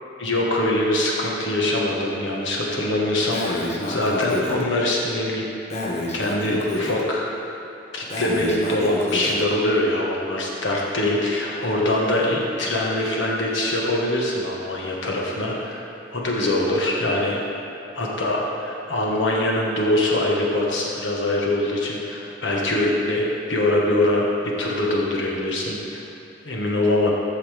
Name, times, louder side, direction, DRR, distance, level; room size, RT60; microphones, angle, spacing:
voice 1, 0.2-5.5 6.1-7.5 7.9-15.8 16.1-17.4 17.9-23.2 23.5-26.0 26.4-27.1, left 1 dB, 85° left, -2 dB, 1.4 m, -23 dB
Breathing, 3.3-4.6 5.7-7.0 8.1-9.4, left 1 dB, 35° left, 1.0 m, -28 dB
13.5 x 5.6 x 3.4 m, 2.9 s
head